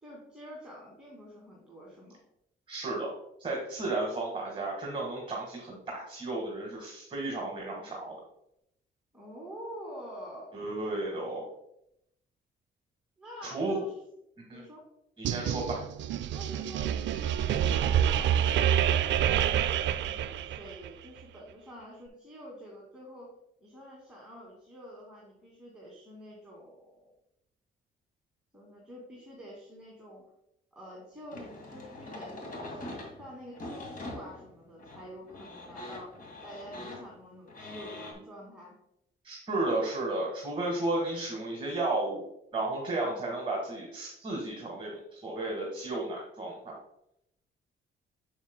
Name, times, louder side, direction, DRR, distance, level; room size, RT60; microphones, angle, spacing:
voice 1, 0.0-2.2 9.1-10.6 13.2-14.0 14.5-14.9 16.3-23.3 23.6-27.1 28.5-30.3 30.7-38.8 43.0-43.3, equal, 5° right, -5 dB, 2.3 m, -47 dB
voice 2, 2.7-3.1 3.4-8.2 10.5-11.5 13.4-13.8 14.5-14.6 15.2-15.9 39.2-42.2 42.5-46.8, right 2 dB, 30° right, -2 dB, 1.7 m, -33 dB
sound 1, 15.2-20.9, right 9 dB, 70° right, 0.4 m, -27 dB
sound 2, 31.3-38.1, left 1 dB, 45° left, 2.2 m, -43 dB
7.8 x 7.1 x 2.2 m, 0.78 s
cardioid pair, 90°, 20 cm